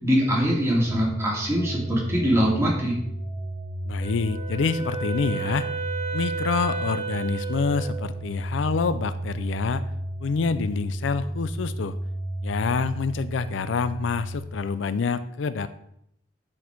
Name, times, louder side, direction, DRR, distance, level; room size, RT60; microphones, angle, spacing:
voice 1, 0.0-2.9, equal, 15° right, -5 dB, 2.4 m, -23 dB
sound 1, 0.8-14.4, right 1 dB, 85° right, 2.6 m, -33 dB
voice 2, 3.8-5.7 6.1-9.8 10.2-12.0 12.4-15.7, left 5 dB, 80° left, 13 dB, 0.4 m, -27 dB
Wind instrument woodwind instrument, 4.0-8.1, right 5 dB, 35° left, 1.9 m, -33 dB
9.7 x 4.3 x 4.5 m, 0.74 s
head